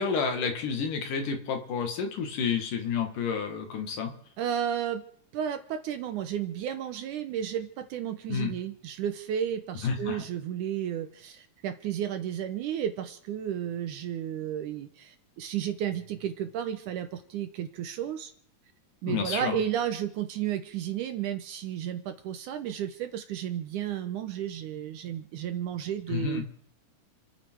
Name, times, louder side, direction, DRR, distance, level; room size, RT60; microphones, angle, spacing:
voice 1, 0.0-4.1 8.3-8.5 9.8-10.2 19.1-19.6 26.1-26.4, left 6 dB, 65° left, 4 dB, 3.2 m, -30 dB
voice 2, 4.4-5.0 5.3-18.3 19.0-26.5, right 10 dB, 75° right, 8 dB, 2.1 m, -33 dB
29.5 x 9.8 x 4.6 m, 0.64 s
omnidirectional pair, 4.1 m